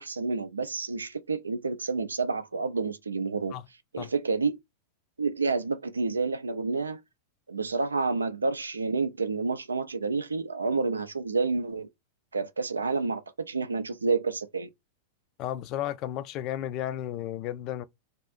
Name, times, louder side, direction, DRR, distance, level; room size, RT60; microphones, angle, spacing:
voice 1, 0.0-3.5 3.9-4.6 5.2-7.0 7.5-11.9 12.3-14.7, right 4 dB, 75° right, 0.3 m, -29 dB
voice 2, 15.4-17.8, left 12 dB, 40° left, 0.3 m, -33 dB
2.5 x 2.3 x 2.5 m
figure-of-eight pair, 90°, 0 cm